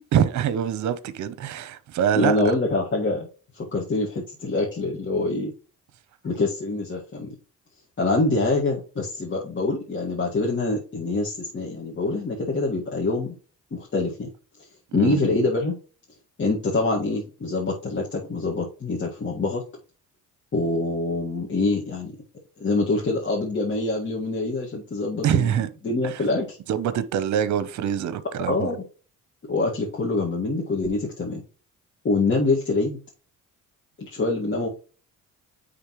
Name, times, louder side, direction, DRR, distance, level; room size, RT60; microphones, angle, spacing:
voice 1, 0.1-2.4 14.9-15.2 25.2-25.7 26.0-26.2 26.7-28.7, right 9 dB, 70° right, 0.8 m, -24 dB
voice 2, 2.1-3.3 3.5-5.5 6.2-7.3 8.0-13.4 13.7-14.3 14.9-15.7 16.4-19.6 20.5-22.1 22.6-25.5 25.8-26.6 28.5-28.8 29.5-31.4 32.0-33.0 34.0-34.7, left 2 dB, 40° left, 1.8 m, -25 dB
9.5 x 3.7 x 3.1 m
cardioid pair, 90°, 30 cm